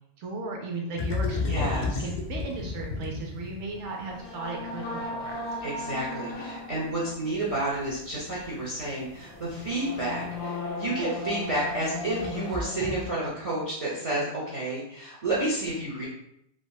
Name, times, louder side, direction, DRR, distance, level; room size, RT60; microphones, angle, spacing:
voice 1, 0.2-5.4, right 3 dB, 75° right, 0 dB, 0.9 m, -36 dB
sound 1, 1.0-13.1, left 3 dB, 55° left, 0.5 m, -34 dB
voice 2, 1.4-1.9 5.6-16.1, right 1 dB, 40° right, -6 dB, 0.5 m, -30 dB
3.5 x 2.1 x 2.2 m, 0.75 s
omnidirectional pair, 1.2 m